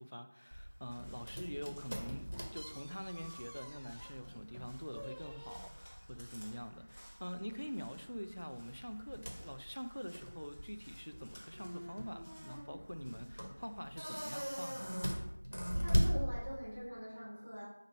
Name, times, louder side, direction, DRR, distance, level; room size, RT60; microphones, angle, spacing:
voice 1, 0.0-15.0, equal, 85° left, 9 dB, 0.4 m, -45 dB
sound 1, 0.5-16.9, equal, 65° right, 0.8 m, -40 dB
Crow, 0.7-13.8, equal, 15° left, 0.6 m, -62 dB
voice 2, 15.7-17.7, equal, 15° right, -13 dB, 1.1 m, -44 dB
3.0 x 2.5 x 4.0 m, 0.80 s
figure-of-eight pair, 180°, 0 cm